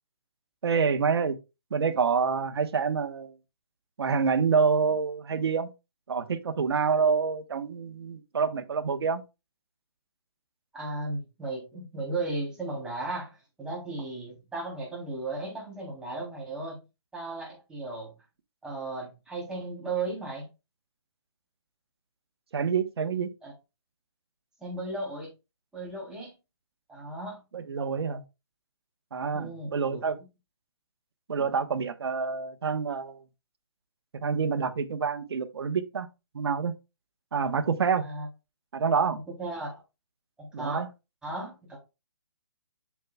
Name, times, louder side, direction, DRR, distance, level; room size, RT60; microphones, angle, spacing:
voice 1, 0.6-1.4 1.7-3.3 4.0-5.7 6.1-9.2 22.5-23.3 27.5-28.2 29.1-30.2 31.3-33.2 34.1-36.1 36.3-36.7 37.3-38.0 38.7-39.2 40.5-40.9, right 5 dB, 65° right, 1.1 m, -27 dB
voice 2, 10.7-13.3 13.6-16.8 17.1-18.1 18.6-20.5 23.4-23.5 24.6-25.3 25.7-26.3 26.9-27.4 29.3-30.0 38.0-38.3 39.1-39.8 40.4-40.8 41.2-41.8, right 2 dB, 5° right, 3.3 m, -35 dB
7.7 x 6.9 x 2.3 m
hypercardioid pair, 160°, 14 cm